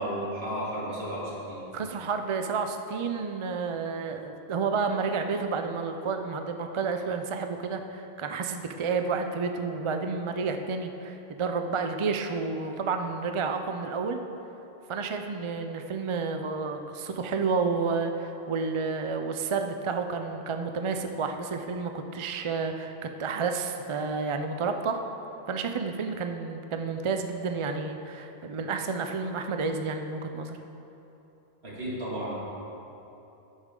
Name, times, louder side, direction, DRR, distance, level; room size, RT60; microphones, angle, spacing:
voice 1, 0.0-1.6 31.6-32.3, equal, 75° right, -7 dB, 2.6 m, -33 dB
voice 2, 1.7-14.2 14.9-25.0 25.5-30.6, right 4 dB, 45° right, 6 dB, 0.4 m, -30 dB
10.5 x 9.5 x 3.7 m, 3.0 s
omnidirectional pair, 1.1 m